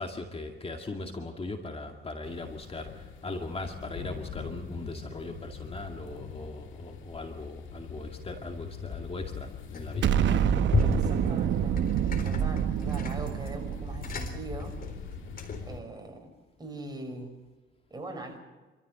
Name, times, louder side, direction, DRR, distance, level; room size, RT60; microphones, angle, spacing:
voice 1, 0.0-10.1, left 2 dB, 30° left, 4 dB, 2.2 m, -39 dB
sound 1, 2.2-15.8, left 7 dB, 75° left, 2.0 m, -42 dB
sound 2, 9.7-10.3 10.7-15.8, left 5 dB, 45° left, 3.9 m, -34 dB
voice 2, 10.0-10.5 10.8-11.7 12.2-14.8 15.7-16.3 16.6-17.3 17.9-18.4, right 2 dB, 20° right, 4 dB, 5.9 m, -41 dB
Explosion, 10.0-15.2, right 9 dB, 70° right, 0.9 m, -27 dB
27.5 x 14.5 x 7.9 m, 1.2 s
cardioid pair, 90°, 20 cm